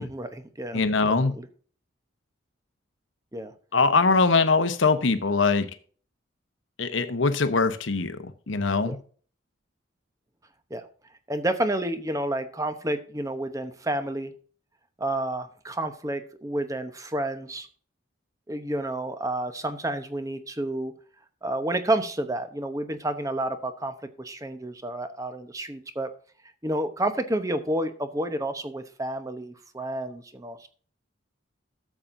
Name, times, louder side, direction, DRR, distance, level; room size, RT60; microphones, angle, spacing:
voice 1, 0.0-0.8 1.4-1.5 3.3-3.5 8.9-9.0 10.7-10.8 11.3-14.3 15.0-17.7 18.5-20.9 21.4-26.1 26.6-30.7, right 1 dB, 15° right, 9 dB, 0.9 m, -30 dB
voice 2, 0.7-1.3 3.7-5.7 6.8-9.0, left 4 dB, 70° left, 10 dB, 1.0 m, -22 dB
12.5 x 7.5 x 2.6 m, 0.43 s
head